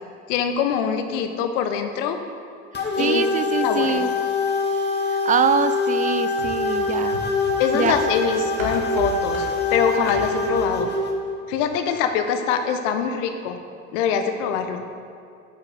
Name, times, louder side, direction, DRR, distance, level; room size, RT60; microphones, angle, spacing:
voice 1, 0.3-2.2 3.0-3.2 3.6-4.0 7.6-10.9 11.5-13.6 13.9-14.8, left 7 dB, 60° left, 7 dB, 1.2 m, -24 dB
sound 1, 2.7-11.1, left 3 dB, 25° left, 2.0 m, -24 dB
voice 2, 3.0-4.1 5.1-7.2 7.7-7.9, right 7 dB, 20° right, 12 dB, 0.5 m, -24 dB
sound 2, 6.4-10.8 11.2-11.3, right 3 dB, 80° right, 2.2 m, -36 dB
15.0 x 8.8 x 4.1 m, 2.4 s
figure-of-eight pair, 65°, 41 cm